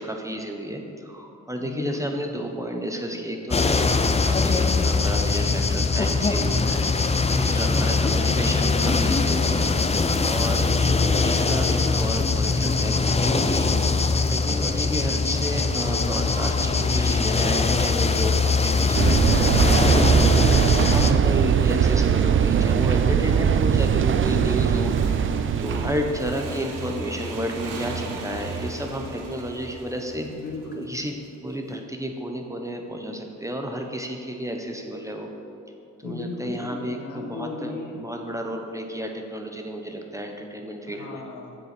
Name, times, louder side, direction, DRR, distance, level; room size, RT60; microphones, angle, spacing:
voice 1, 0.0-6.9 7.4-9.7 10.1-13.7 14.3-19.6 19.9-24.9 25.6-30.3 30.8-31.2 31.4-35.3 36.0-41.2, equal, 10° right, 2 dB, 1.1 m, -31 dB
voice 2, 1.6-2.4 7.5-8.0 10.7-11.0 18.0-18.5 19.5-20.2 25.7-26.1 30.3-30.8 36.0-38.0 40.9-41.6, left 3 dB, 70° left, 1 dB, 1.5 m, -37 dB
sound 1, 3.5-21.1, left 4 dB, 20° left, 0.6 m, -22 dB
sound 2, 18.9-26.4, right 7 dB, 40° right, 0.5 m, -20 dB
Motorcycle / Engine, 24.8-31.1, right 4 dB, 75° right, 1.3 m, -36 dB
7.9 x 6.8 x 6.2 m, 2.7 s
cardioid pair, 70°, 32 cm